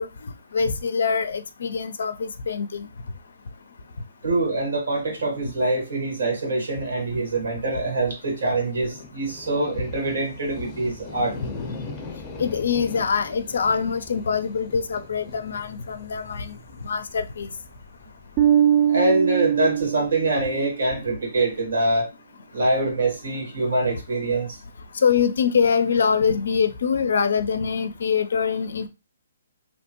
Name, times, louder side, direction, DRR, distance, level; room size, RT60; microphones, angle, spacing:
voice 1, 0.0-2.9 12.4-16.5 16.8-17.5 25.0-28.9, left 6 dB, 70° left, 0.4 m, -24 dB
voice 2, 4.2-11.3 18.9-22.1 22.5-24.5, right 2 dB, 70° right, 1.4 m, -24 dB
sound 1, 8.1-18.5, left 3 dB, 15° left, 0.6 m, -40 dB
Bass guitar, 18.4-20.8, right 10 dB, 30° right, 0.4 m, -21 dB
2.9 x 2.1 x 2.9 m
hypercardioid pair, 150°, 0 cm